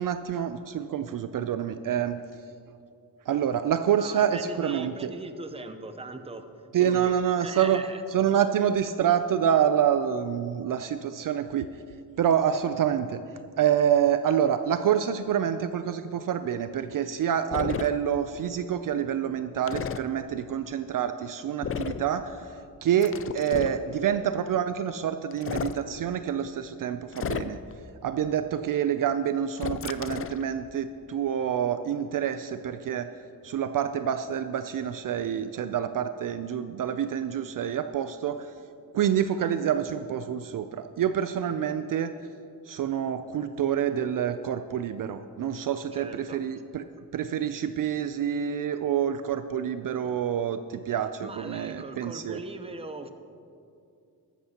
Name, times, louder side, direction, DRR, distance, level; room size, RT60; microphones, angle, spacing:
voice 1, 0.0-2.2 3.3-5.1 6.7-7.8 8.1-11.7 12.2-13.2 13.6-27.6 28.0-33.1 33.4-38.5 38.9-42.1 42.7-46.9 47.1-52.4, right 9 dB, 55° right, 10 dB, 0.5 m, -27 dB
voice 2, 4.0-6.5 6.7-8.0 45.9-46.4 51.2-53.1, right 2 dB, 15° right, 8 dB, 0.7 m, -40 dB
sound 1, 17.5-17.9 19.7-20.0 21.6-22.1 23.0-23.8 25.3-25.8 27.1-27.7 29.6-30.4, left 7 dB, 35° left, 0.4 m, -32 dB
13.5 x 13.0 x 2.9 m, 2.5 s
cardioid pair, 95°, 39 cm